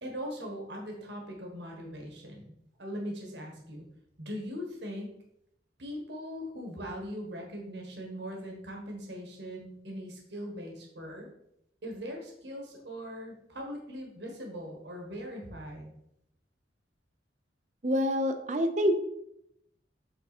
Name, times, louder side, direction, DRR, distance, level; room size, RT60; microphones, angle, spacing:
voice 1, 0.0-2.5 2.8-3.8 4.2-5.1 5.8-11.3 11.8-15.9, equal, 65° right, 1 dB, 1.6 m, -40 dB
voice 2, 17.8-19.0, equal, 40° right, 7 dB, 0.6 m, -26 dB
7.9 x 3.8 x 4.3 m, 0.77 s
head